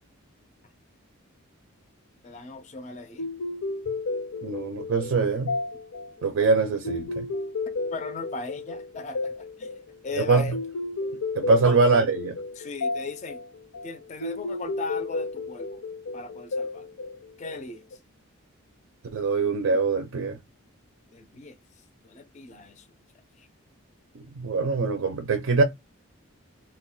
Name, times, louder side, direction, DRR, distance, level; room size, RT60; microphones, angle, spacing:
voice 1, 2.2-3.3 7.9-9.7 10.0-10.6 11.7-11.8 12.6-13.4 13.8-15.8 16.1-16.9 17.4-18.0 21.1-21.6 22.0-22.9 23.4-23.5, left 3 dB, 30° left, 0.3 m, -38 dB
sound 1, 3.2-18.0, left 3 dB, 85° left, 0.5 m, -33 dB
voice 2, 4.4-5.5 6.2-7.3 10.2-10.4 11.3-12.4 19.1-20.4 24.1-25.6, right 4 dB, 75° right, 0.4 m, -23 dB
2.2 x 2.1 x 3.6 m
head